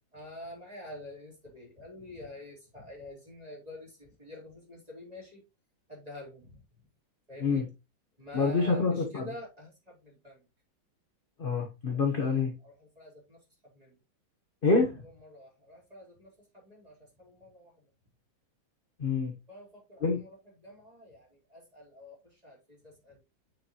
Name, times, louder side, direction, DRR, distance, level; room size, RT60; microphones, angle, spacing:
voice 1, 0.1-5.4 5.9-6.6 7.3-7.7 8.2-10.4 11.9-14.0 15.0-17.8 19.5-20.4 20.6-23.2, left 1 dB, 20° right, -3 dB, 4.1 m, -47 dB
voice 2, 8.3-9.3 11.4-12.5 14.6-15.0 19.0-19.3 20.0-20.2, left 4 dB, 30° left, 1 dB, 1.2 m, -27 dB
7.3 x 6.7 x 3.0 m, 0.26 s
omnidirectional pair, 2.0 m